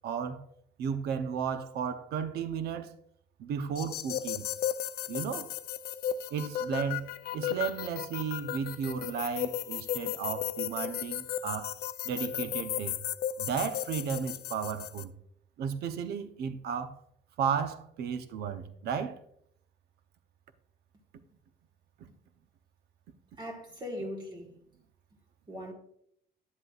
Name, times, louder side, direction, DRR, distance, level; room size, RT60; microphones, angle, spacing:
voice 1, 0.0-0.4 0.8-2.9 3.4-4.5 5.1-5.5 6.3-11.7 12.0-13.0 13.4-15.1 15.6-17.0 17.4-19.2 22.0-22.1, right 7 dB, 70° right, 0.8 m, -34 dB
sound 1, 3.7-15.0, left 11 dB, 70° left, 0.5 m, -35 dB
voice 2, 23.4-24.5 25.5-25.7, equal, 25° right, 1.7 m, -39 dB
9.8 x 7.8 x 2.4 m
cardioid pair, 110°, 17 cm